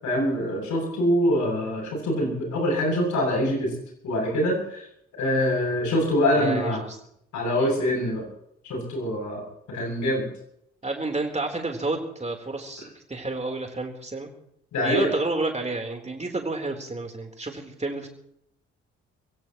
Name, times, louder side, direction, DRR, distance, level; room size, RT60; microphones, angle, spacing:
voice 1, 0.0-3.7 4.0-4.9 5.2-6.8 7.3-8.3 8.6-9.4 9.7-10.3 14.7-15.1, equal, 60° left, 1 dB, 7.8 m, -24 dB
voice 2, 6.3-7.0 7.6-7.7 10.8-14.3 14.8-18.1, right 2 dB, 20° right, 3 dB, 3.8 m, -30 dB
27.0 x 16.5 x 3.1 m, 0.74 s
figure-of-eight pair, 45°, 34 cm